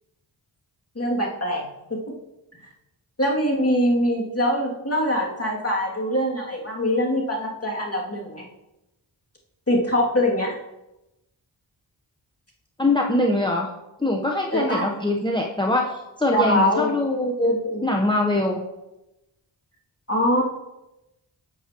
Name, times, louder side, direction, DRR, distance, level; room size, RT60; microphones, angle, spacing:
voice 1, 0.9-2.1 3.2-8.5 9.7-10.6 14.5-14.9 16.3-17.0 17.4-17.8 20.1-20.4, left 1 dB, 30° left, -2 dB, 2.4 m, -23 dB
voice 2, 12.8-13.7 14.0-18.6, left 1 dB, 10° left, 0 dB, 0.8 m, -23 dB
10.5 x 7.2 x 2.9 m, 0.95 s
cardioid pair, 40°, 47 cm